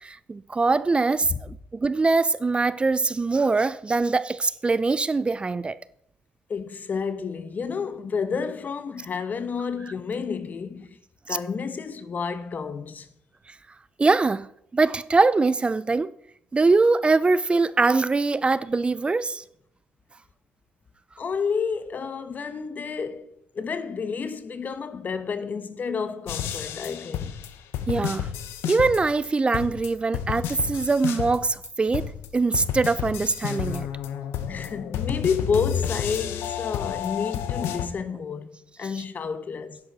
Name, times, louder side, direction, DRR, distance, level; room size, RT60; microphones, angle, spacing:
voice 1, 0.0-5.8 14.0-14.5 14.7-16.1 16.5-19.4 27.9-28.3 28.6-33.9, right 3 dB, 25° right, 0.5 m, -23 dB
voice 2, 6.5-11.0 11.3-13.1 21.2-27.4 34.5-39.8, left 5 dB, 45° left, 1.1 m, -30 dB
sound 1, 26.3-29.3 29.5-31.7 31.9-37.9, left 9 dB, 80° left, 0.9 m, -31 dB
10.5 x 9.6 x 4.2 m
supercardioid pair, 60°, 4 cm